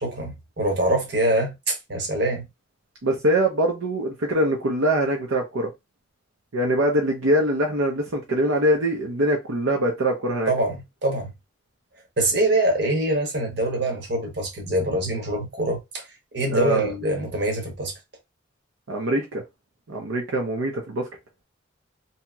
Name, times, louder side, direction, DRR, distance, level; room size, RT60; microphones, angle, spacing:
voice 1, 0.0-2.4 10.5-10.8 11.0-11.3 12.2-16.0 16.3-17.9, right 1 dB, 55° right, 1.0 m, -24 dB
voice 2, 3.0-5.7 6.5-10.5 16.5-16.9 18.9-19.4 19.9-21.0, right 1 dB, 80° right, 0.7 m, -23 dB
2.8 x 2.8 x 2.3 m
head